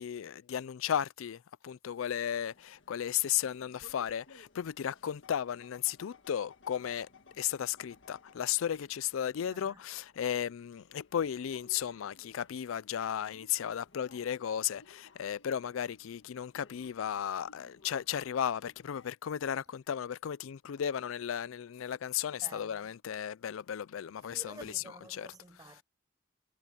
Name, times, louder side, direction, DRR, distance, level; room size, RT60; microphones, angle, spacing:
voice 1, 0.0-7.1 7.4-24.7 25.1-25.3, left 9 dB, 85° left, 0.4 m, -35 dB
sound 1, 2.2-19.1, left 3 dB, 65° left, 1.7 m, -61 dB
voice 2, 9.5-9.8 22.4-22.9 24.3-25.8, right 2 dB, 20° right, 0.6 m, -51 dB
head